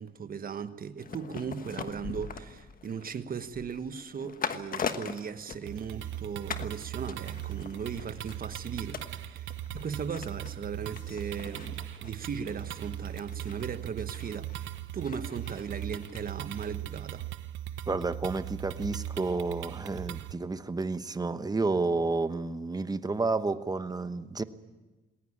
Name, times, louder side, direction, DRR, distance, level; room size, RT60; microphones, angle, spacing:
voice 1, 0.0-17.3, right 6 dB, 45° right, 1.3 m, -38 dB
sound 1, 1.0-6.2 6.5-6.8 7.1-16.2 16.5-16.6, left 6 dB, 45° left, 1.4 m, -41 dB
sound 2, 5.7-20.3, right 13 dB, 75° right, 1.0 m, -39 dB
voice 2, 17.9-24.4, right 3 dB, 20° right, 1.1 m, -30 dB
20.0 x 18.5 x 8.7 m
cardioid pair, 90°, 20 cm